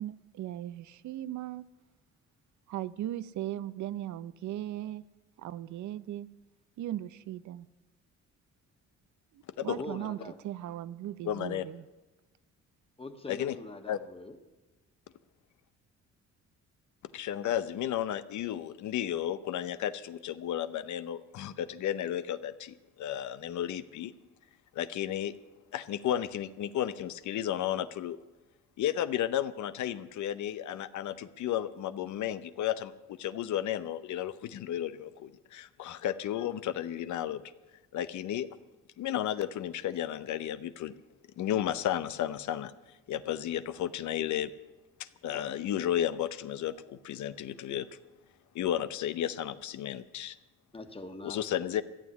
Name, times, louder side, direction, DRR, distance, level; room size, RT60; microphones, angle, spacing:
voice 1, 0.0-1.6 2.7-5.0 5.4-6.3 6.8-7.7 9.6-10.2 10.4-11.8, right 13 dB, 70° right, 15 dB, 0.6 m, -38 dB
voice 2, 9.7-10.4 13.0-14.4 50.7-51.4, left 2 dB, 20° left, 6 dB, 1.5 m, -43 dB
voice 3, 11.2-11.7 13.3-13.6 13.9-14.0 17.1-24.1 24.7-25.3 25.7-28.2 28.8-37.4 37.9-38.5 39.0-40.9 41.4-42.7 43.1-44.5 45.0-47.9 48.5-50.4 51.2-51.8, left 11 dB, 70° left, 13 dB, 0.7 m, -33 dB
14.0 x 7.2 x 9.6 m, 1.1 s
cardioid pair, 90°, 30 cm